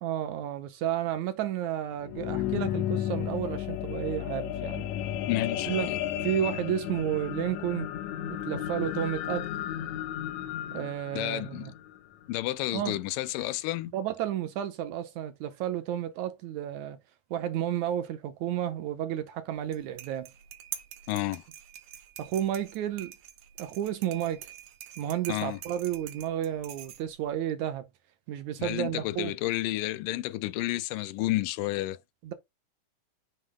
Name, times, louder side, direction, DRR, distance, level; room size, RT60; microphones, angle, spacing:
voice 1, 0.0-4.9 5.7-5.9 6.2-7.9 8.3-9.5 10.7-11.7 12.7-13.0 13.9-17.0 17.3-20.3 22.2-23.1 23.6-24.5 25.0-27.9 28.3-29.3 32.2-32.3, right 11 dB, 75° right, 1.9 m, -32 dB
sound 1, 1.8-12.4 13.0-13.1, left 11 dB, 70° left, 1.9 m, -33 dB
voice 2, 5.3-6.0 10.7-10.9 11.1-11.7 12.3-13.9 21.1-21.4 25.3-25.6 28.6-32.0, left 17 dB, 90° left, 2.2 m, -31 dB
sound 2, 19.6-27.3, right 11 dB, 90° right, 2.8 m, -46 dB
7.7 x 2.9 x 4.9 m
omnidirectional pair, 3.8 m